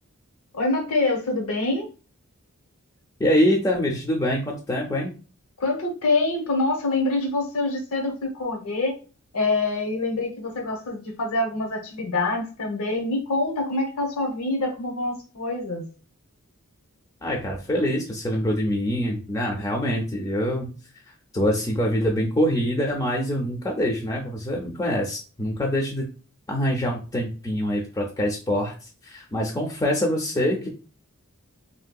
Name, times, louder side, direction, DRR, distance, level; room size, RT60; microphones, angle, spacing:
voice 1, 0.5-1.9 5.6-8.9 9.3-15.8, left 2 dB, 75° left, 2 dB, 0.7 m, -25 dB
voice 2, 3.2-5.1 17.2-20.7 21.1-26.0 26.5-30.7, equal, 15° left, 0 dB, 0.3 m, -25 dB
3.0 x 2.6 x 2.2 m, 0.35 s
head